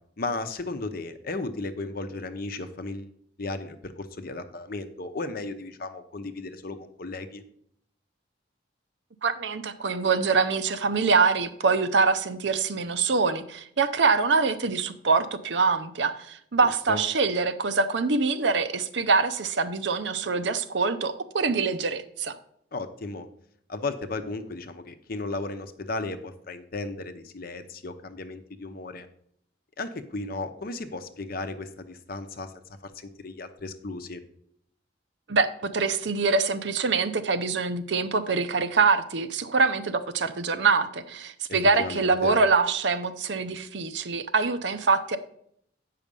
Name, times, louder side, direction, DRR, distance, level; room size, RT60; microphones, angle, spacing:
voice 1, 0.2-3.1 3.4-7.4 16.9-17.0 22.7-23.3 23.7-29.1 29.8-32.5 32.8-34.2 41.5-42.4, left 3 dB, 50° left, 8 dB, 0.8 m, -35 dB
voice 2, 9.2-22.4 35.3-45.2, right 4 dB, 70° right, 10 dB, 0.7 m, -24 dB
8.4 x 5.8 x 5.3 m, 0.69 s
head